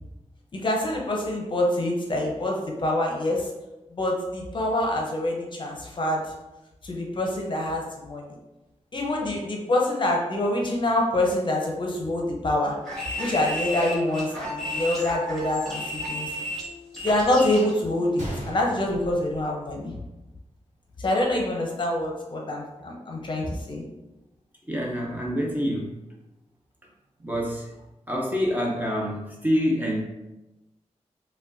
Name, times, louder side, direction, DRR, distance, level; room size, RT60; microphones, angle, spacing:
voice 1, 0.5-3.5 3.9-6.3 6.8-8.4 8.9-12.7 13.2-16.3 17.0-19.9 21.0-23.8, left 1 dB, 40° left, 0 dB, 0.6 m, -26 dB
sound 1, 12.8-17.7, equal, ahead, 1.3 m, -32 dB
Gunshot gunfire, 18.2-20.2 20.5-20.6 21.3-21.5, equal, 70° right, 1.2 m, -37 dB
voice 2, 24.7-25.9 27.2-27.6 28.1-30.0, equal, 15° right, -2 dB, 0.5 m, -26 dB
5.0 x 2.2 x 2.5 m, 1.0 s
wide cardioid pair, 175°, 12 cm